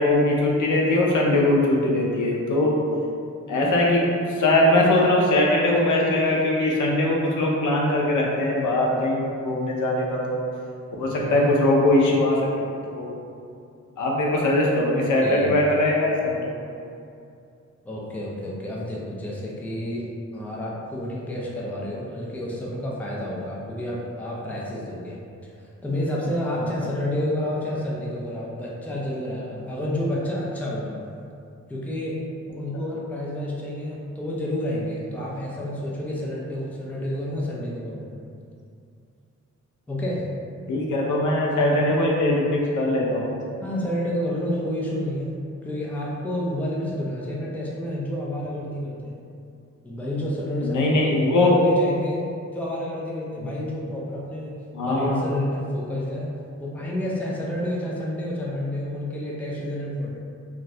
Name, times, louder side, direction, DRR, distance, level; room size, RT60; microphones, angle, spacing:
voice 1, 0.0-2.8 3.5-4.1 4.3-10.4 11.0-13.1 14.0-16.5 26.6-26.7 40.7-43.4 50.6-51.6 53.4-53.5 54.7-55.2, left 1 dB, 90° left, -2 dB, 0.6 m, -21 dB
voice 2, 11.0-11.7 12.1-12.2 14.9-15.6 17.8-25.2 25.6-31.0 31.7-32.2 32.5-38.1 39.9-40.3 43.6-45.4 45.6-49.2 49.8-52.2 52.5-56.3 56.6-60.1, left 1 dB, 5° left, -5 dB, 0.3 m, -29 dB
2.6 x 2.4 x 3.1 m, 2.5 s
wide cardioid pair, 175°, 29 cm